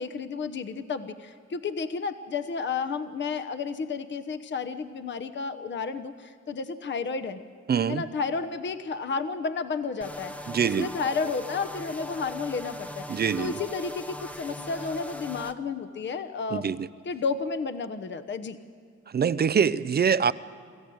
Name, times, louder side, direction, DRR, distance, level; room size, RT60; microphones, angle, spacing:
voice 1, 0.0-7.4 7.9-10.3 10.6-16.7 17.0-18.6, left 5 dB, 40° left, 11 dB, 1.0 m, -32 dB
voice 2, 7.7-8.0 10.5-10.9 13.1-13.5 16.5-16.9 19.1-20.3, right 7 dB, 35° right, 16 dB, 0.5 m, -24 dB
sound 1, 10.0-15.5, equal, 5° left, 1.0 m, -39 dB
26.0 x 14.0 x 7.9 m, 2.1 s
cardioid pair, 90°, 30 cm